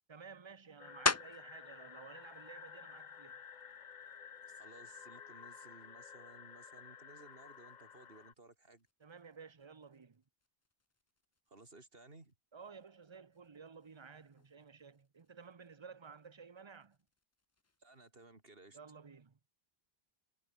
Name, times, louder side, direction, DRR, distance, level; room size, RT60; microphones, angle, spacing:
voice 1, 0.1-3.4 9.0-10.2 12.5-17.0 18.7-19.4, right 5 dB, 30° right, 0.8 m, -54 dB
sound 1, 0.8-8.3, left 7 dB, 50° left, 0.9 m, -53 dB
sound 2, 1.1-1.6 2.2-6.6 7.1-12.3 12.6-18.2, left 3 dB, 20° left, 0.5 m, -44 dB
voice 2, 4.5-8.9 11.5-12.3 17.8-18.8, right 2 dB, 65° right, 3.6 m, -58 dB
omnidirectional pair, 1.0 m